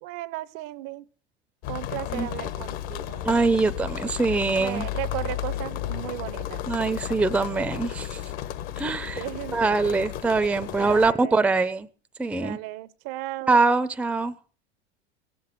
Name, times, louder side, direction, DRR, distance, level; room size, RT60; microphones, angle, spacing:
voice 1, 0.0-1.1 1.7-3.3 4.6-6.6 9.1-9.6 10.8-11.5 12.4-13.6, right 16 dB, 50° right, 0.7 m, -35 dB
sound 1, 1.6-11.1, left 12 dB, 55° left, 1.2 m, -33 dB
voice 2, 3.2-4.9 6.7-8.2 8.8-9.3 9.5-11.9 12.2-12.6 13.5-14.3, right 3 dB, 5° right, 0.6 m, -23 dB
17.5 x 7.9 x 5.9 m
hypercardioid pair, 90°, 33 cm